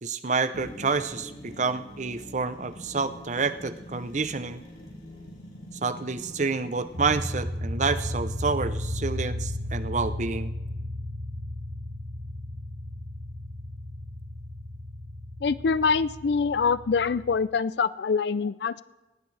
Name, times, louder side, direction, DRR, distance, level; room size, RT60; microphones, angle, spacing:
voice 1, 0.0-4.6 5.8-10.5, right 4 dB, 40° right, 12 dB, 0.6 m, -28 dB
sound 1, 0.5-7.3, equal, 50° left, 4.5 m, -44 dB
sound 2, 6.9-17.4, left 1 dB, 75° right, 4.4 m, -34 dB
voice 2, 15.4-18.8, left 5 dB, 65° left, 17 dB, 0.4 m, -25 dB
19.0 x 17.0 x 3.3 m, 1.1 s
head